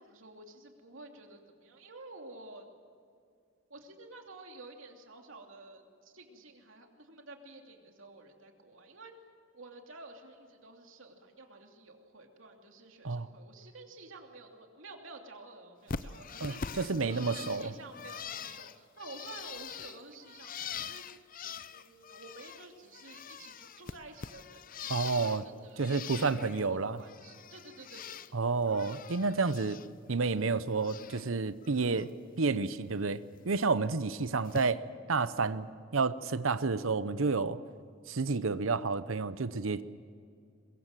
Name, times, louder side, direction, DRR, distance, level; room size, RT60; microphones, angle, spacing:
voice 1, 0.0-2.7 3.7-9.1 9.5-21.0 21.7-28.5, right 2 dB, 75° right, 3 dB, 2.9 m, -51 dB
Bird, 15.9-22.7 22.9-25.5 25.8-26.6 27.0-28.3 28.6-29.9 30.2-31.2 31.6-32.0 33.3-33.4 34.4-34.6, left 6 dB, 45° left, 0.6 m, -43 dB
voice 2, 16.4-17.7 24.9-25.4 25.8-27.0 28.3-29.8 30.1-32.1 32.4-34.8 35.1-35.7 35.9-37.6 38.1-39.8, right 4 dB, 90° right, 14 dB, 0.8 m, -30 dB
22.5 x 22.5 x 7.6 m, 2.3 s
head